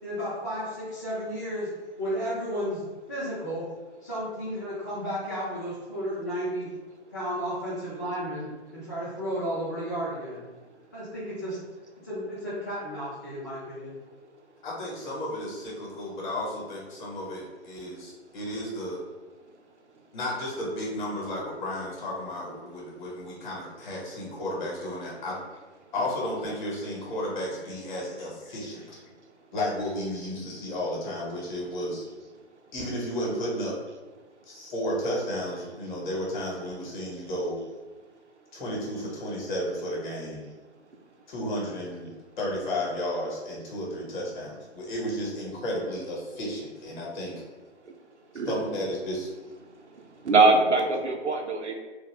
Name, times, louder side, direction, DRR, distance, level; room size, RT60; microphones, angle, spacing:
voice 1, 0.0-1.7 2.0-3.7 4.0-6.7 7.1-10.5 10.9-11.6 12.0-14.0, equal, 20° left, -10 dB, 0.3 m, -33 dB
voice 2, 14.6-19.0 20.1-25.4 25.9-29.0 29.5-32.0 32.7-33.8 34.5-37.6 38.5-40.5 41.3-42.1 42.4-47.3 48.5-49.3, left 1 dB, 45° left, -3 dB, 1.0 m, -33 dB
voice 3, 49.9-51.7, right 3 dB, 90° right, 3 dB, 0.6 m, -23 dB
2.5 x 2.3 x 3.1 m, 1.2 s
figure-of-eight pair, 125°, 34 cm